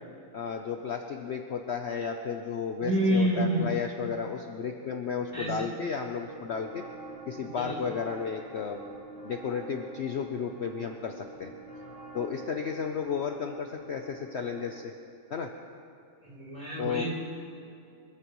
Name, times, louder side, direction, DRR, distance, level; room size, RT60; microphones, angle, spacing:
voice 1, 0.3-6.8 7.3-8.8 9.2-11.5 12.1-14.9 15.3-15.5 16.8-17.0, left 6 dB, 55° left, 4 dB, 0.9 m, -33 dB
voice 2, 2.8-3.6 5.3-5.7 7.4-7.8 16.2-17.1, right 1 dB, 25° right, -5 dB, 4.0 m, -28 dB
sound 1, 6.3-14.9, right 2 dB, 55° right, 3.1 m, -48 dB
24.5 x 14.5 x 3.1 m, 2.5 s
omnidirectional pair, 1.6 m